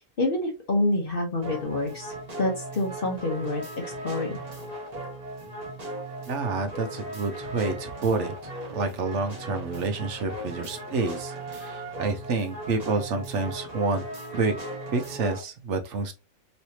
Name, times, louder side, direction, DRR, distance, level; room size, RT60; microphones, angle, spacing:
voice 1, 0.2-3.6 4.0-4.4, left 2 dB, 45° left, 1.0 m, -27 dB
sound 1, 1.4-15.4, right 1 dB, 30° right, 1.2 m, -37 dB
voice 2, 6.3-14.0 14.3-14.5 14.9-16.1, right 4 dB, 65° right, 0.9 m, -29 dB
3.2 x 3.0 x 2.7 m
omnidirectional pair, 1.5 m